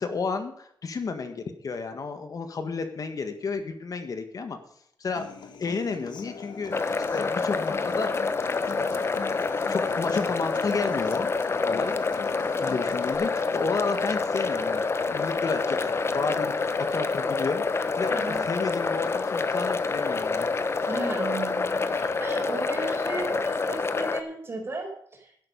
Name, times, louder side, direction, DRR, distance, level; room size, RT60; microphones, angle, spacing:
voice 1, 0.0-4.6 5.0-5.3 5.6-8.3 8.7-8.9 9.3-11.3 11.6-17.6 18.0-20.5, left 4 dB, 50° left, 8 dB, 1.6 m, -32 dB
Human voice / Acoustic guitar, 5.2-13.1, left 5 dB, 75° left, 2.0 m, -42 dB
sound 1, 6.7-24.2, left 4 dB, 35° left, 1.0 m, -27 dB
voice 2, 18.1-18.4 20.9-25.4, right 2 dB, 30° right, 2 dB, 4.7 m, -35 dB
12.0 x 11.0 x 5.4 m, 0.67 s
wide cardioid pair, 150°, 8 cm